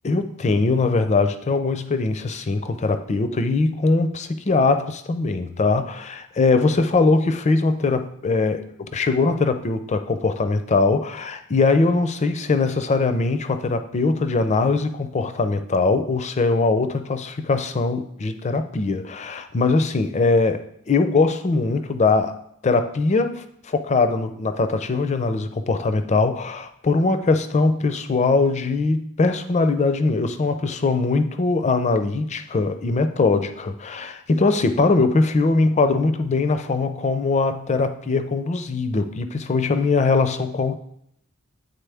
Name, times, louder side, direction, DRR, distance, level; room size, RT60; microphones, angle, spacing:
voice 1, 0.0-22.3 22.6-40.8, left 3 dB, 35° left, 9 dB, 0.4 m, -21 dB
8.9 x 3.9 x 3.4 m, 0.72 s
head